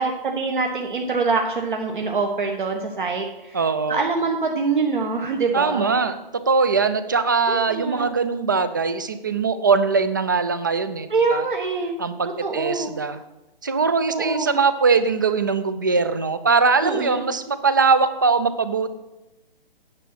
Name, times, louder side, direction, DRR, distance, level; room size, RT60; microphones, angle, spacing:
voice 1, 0.0-3.6 3.9-5.9 7.5-8.1 11.1-12.0 12.4-12.9 14.1-14.5 16.8-17.2, right 4 dB, 60° right, 2 dB, 1.3 m, -24 dB
voice 2, 3.5-4.0 5.5-6.2 6.5-11.4 12.0-13.2 13.6-18.9, right 4 dB, 20° right, 12 dB, 0.4 m, -21 dB
9.6 x 7.2 x 6.2 m, 0.98 s
figure-of-eight pair, 135°, 29 cm